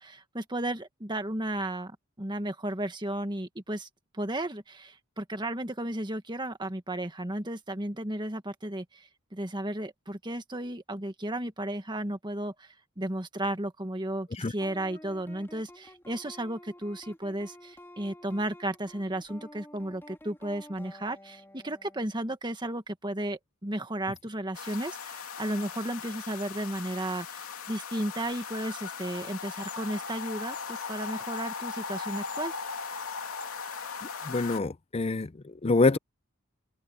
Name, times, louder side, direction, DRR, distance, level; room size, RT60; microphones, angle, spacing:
voice 1, 0.0-3.9 4.1-32.5, right 1 dB, 20° right, 1.7 m, -34 dB
sound 1, 14.6-22.0, left 1 dB, 10° left, 3.9 m, -50 dB
sound 2, 24.5-34.6, left 5 dB, 85° left, 3.0 m, -38 dB
voice 2, 34.2-36.0, left 3 dB, 30° left, 0.5 m, -26 dB
head